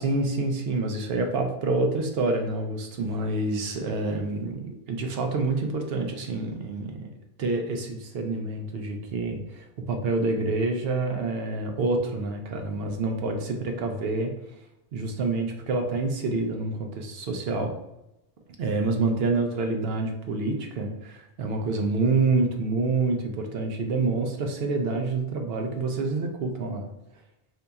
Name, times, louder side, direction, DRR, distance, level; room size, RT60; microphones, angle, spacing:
voice 1, 0.0-7.1 7.4-14.3 14.9-17.7 18.6-26.9, right 3 dB, 75° right, 3 dB, 0.8 m, -27 dB
3.9 x 2.8 x 2.3 m, 0.87 s
omnidirectional pair, 1.0 m